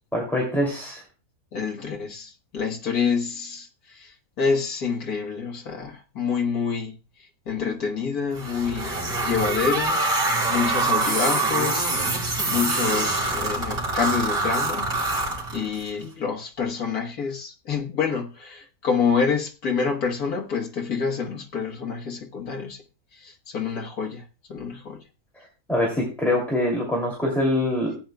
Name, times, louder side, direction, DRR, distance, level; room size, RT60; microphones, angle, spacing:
voice 1, 0.1-1.0 25.7-28.0, left 1 dB, ahead, 2.7 m, -24 dB
voice 2, 1.5-7.0 7.5-8.9 9.2-10.0 10.5-11.9 12.5-14.9 15.2-22.8 23.1-25.0, left 5 dB, 70° left, 1.9 m, -27 dB
sound 1, 8.3-15.9, right 2 dB, 65° right, 3.5 m, -25 dB
16.0 x 9.0 x 2.3 m
omnidirectional pair, 1.6 m